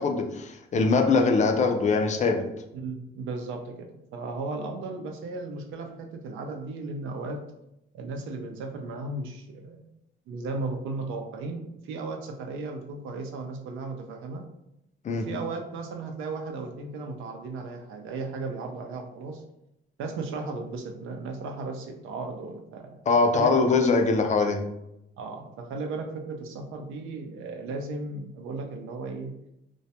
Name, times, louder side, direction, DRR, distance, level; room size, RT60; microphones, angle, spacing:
voice 1, 0.0-2.4 15.0-15.3 23.1-24.6, left 4 dB, 35° left, 5 dB, 0.4 m, -22 dB
voice 2, 2.7-7.4 7.9-9.9 10.3-14.4 15.1-19.4 20.0-23.0 23.3-23.6 24.3-24.4 25.2-29.3, right 3 dB, 90° right, 4 dB, 0.5 m, -35 dB
2.2 x 2.1 x 2.7 m, 0.83 s
cardioid pair, 90°, 20 cm